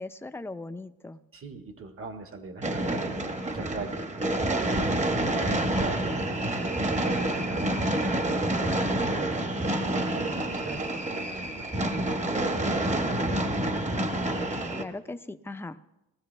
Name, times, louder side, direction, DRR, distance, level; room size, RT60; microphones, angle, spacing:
voice 1, 0.0-1.2 14.7-15.8, left 2 dB, 10° left, 9 dB, 0.6 m, -38 dB
voice 2, 1.3-4.1 4.4-6.2 6.6-13.8, right 4 dB, 45° right, 5 dB, 1.8 m, -41 dB
sound 1, 2.6-14.8, right 1 dB, 25° right, 1.3 m, -28 dB
19.0 x 14.0 x 3.4 m, 0.91 s
cardioid pair, 90°, 30 cm